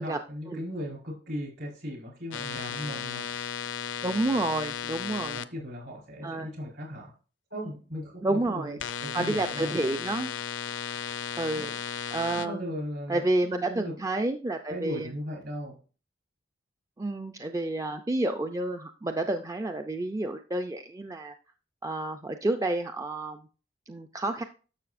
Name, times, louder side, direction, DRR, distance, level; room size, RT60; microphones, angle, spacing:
voice 1, 0.0-3.2 5.3-7.1 7.5-9.8 11.5-11.8 12.3-13.2 13.7-13.9 14.7-15.8, equal, 60° right, -2 dB, 4.4 m, -37 dB
sound 1, 2.3-5.4 8.8-12.5, left 7 dB, 80° left, 0.5 m, -35 dB
voice 2, 4.0-5.4 6.2-6.5 8.2-8.8 9.1-10.3 11.4-11.7 12.1-12.7 13.1-15.1 17.0-21.3 21.8-23.5 23.9-24.4, right 2 dB, 15° right, 6 dB, 0.4 m, -30 dB
11.5 x 6.5 x 2.5 m, 0.36 s
head